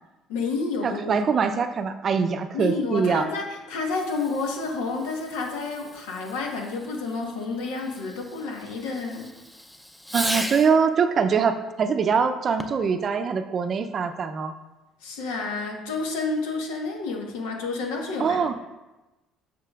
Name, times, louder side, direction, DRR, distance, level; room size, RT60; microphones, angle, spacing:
voice 1, 0.3-1.2 2.5-9.3 15.0-18.5, left 3 dB, 90° left, 1 dB, 1.2 m, -30 dB
voice 2, 0.8-3.3 10.1-14.5 18.2-18.5, right 6 dB, 45° right, 10 dB, 0.5 m, -23 dB
Fireworks, 3.8-10.9 12.5-13.0, left 1 dB, 5° left, 0.5 m, -38 dB
7.6 x 6.5 x 2.4 m, 1.1 s
supercardioid pair, 85°, 0 cm